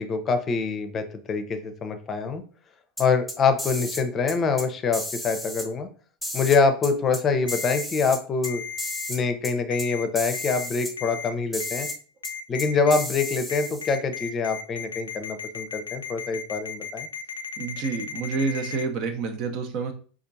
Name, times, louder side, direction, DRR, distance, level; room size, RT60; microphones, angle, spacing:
voice 1, 0.0-2.4 3.0-5.9 6.3-8.6 9.1-11.9 12.5-17.1, left 4 dB, 30° left, 8 dB, 0.6 m, -25 dB
sound 1, 3.0-4.0 4.3-4.6 4.9-5.7 6.2-7.2 7.5-8.5 8.8-9.2 9.4-9.5 9.8-9.9 10.1-10.9 11.5-12.0 12.2-12.3 12.6-13.9, left 1 dB, 5° left, 0.9 m, -33 dB
Ringtone, 7.5-7.8 8.4-9.1 9.7-10.0 10.3-10.7 11.0-11.3 11.6-11.9 12.2-18.8, left 8 dB, 90° left, 0.4 m, -35 dB
voice 2, 17.6-19.9, right 4 dB, 50° right, 6 dB, 0.7 m, -28 dB
4.4 x 2.4 x 2.6 m, 0.41 s
hypercardioid pair, 90°, 0 cm